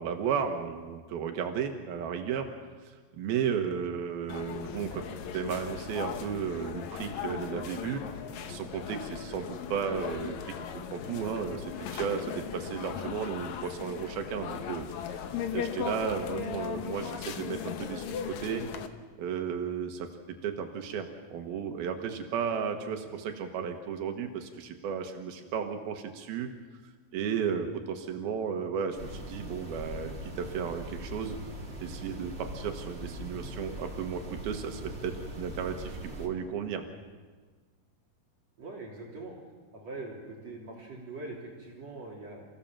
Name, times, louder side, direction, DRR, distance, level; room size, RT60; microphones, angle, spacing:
voice 1, 0.0-2.5 3.2-5.0 5.3-8.0 8.4-10.5 10.9-18.6 19.2-26.5 27.1-31.4 31.8-36.9, right 7 dB, 85° right, 5 dB, 3.2 m, -34 dB
sound 1, 4.3-18.9, left 8 dB, 65° left, 2.1 m, -38 dB
sound 2, 29.0-36.3, right 1 dB, 20° right, 2.2 m, -41 dB
voice 2, 38.6-39.3 39.7-42.5, right 2 dB, 45° right, -2 dB, 4.0 m, -42 dB
29.5 x 16.0 x 7.4 m, 1.5 s
omnidirectional pair, 4.2 m